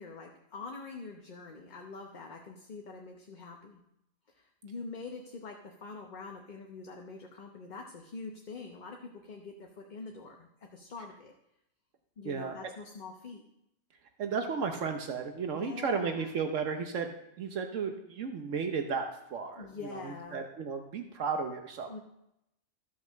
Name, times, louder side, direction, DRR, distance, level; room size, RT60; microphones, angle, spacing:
voice 1, 0.0-3.8 4.3-11.3 12.2-13.4 15.5-16.3 19.6-20.4 21.9-22.0, left 4 dB, 40° left, 2 dB, 1.0 m, -45 dB
voice 2, 12.2-12.5 14.2-19.1 19.3-19.7 20.3-22.0, right 5 dB, 80° right, 5 dB, 1.3 m, -33 dB
14.0 x 5.9 x 6.4 m, 0.82 s
omnidirectional pair, 1.3 m